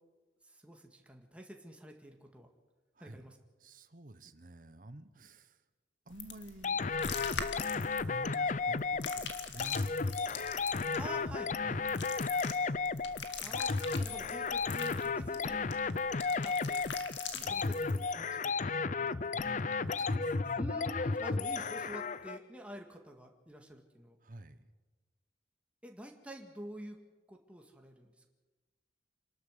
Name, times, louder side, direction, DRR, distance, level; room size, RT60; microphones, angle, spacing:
voice 1, 0.4-2.5 3.0-3.4 11.0-11.8 13.4-15.6 16.4-16.8 17.5-18.5 20.6-24.2 25.8-27.0 27.3-28.3, right 1 dB, 5° right, 2 dB, 1.9 m, -48 dB
voice 2, 3.0-3.3 3.6-5.6 6.1-6.9 7.5-9.1 9.4-10.5 11.6-11.9 13.4-13.6 17.2-18.1 19.0-20.6 24.2-24.7, right 1 dB, 50° right, 12 dB, 1.1 m, -51 dB
sound 1, 6.1-18.0, left 6 dB, 85° left, 2.1 m, -44 dB
sound 2, 6.6-22.4, left 4 dB, 45° left, 0.6 m, -34 dB
27.0 x 12.5 x 8.1 m, 1.2 s
head